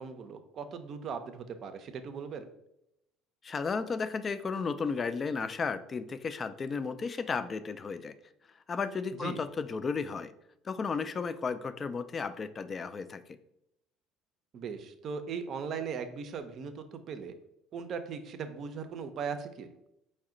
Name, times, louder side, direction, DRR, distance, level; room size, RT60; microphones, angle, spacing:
voice 1, 0.0-2.5 9.2-9.4 14.5-17.3 17.7-19.7, right 6 dB, 50° right, 9 dB, 0.5 m, -38 dB
voice 2, 3.4-8.1 8.7-10.3 10.6-13.4, left 5 dB, 35° left, 12 dB, 0.3 m, -34 dB
4.8 x 2.1 x 3.7 m, 0.81 s
hypercardioid pair, 65°, 0 cm